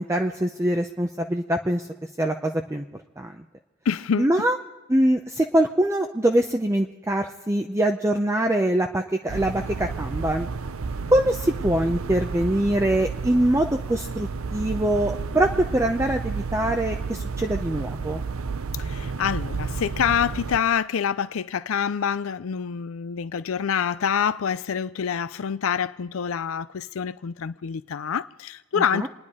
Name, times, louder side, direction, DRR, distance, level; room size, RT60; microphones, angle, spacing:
voice 1, 0.0-2.8 3.2-3.3 4.2-4.6 4.9-10.5 11.1-18.2 28.8-29.1, right 1 dB, 15° right, 0.6 m, -23 dB
voice 2, 3.9-4.3 18.8-29.1, left 7 dB, 75° left, 0.5 m, -26 dB
sound 1, 9.3-20.6, right 4 dB, 75° right, 0.6 m, -31 dB
27.5 x 10.5 x 4.9 m
head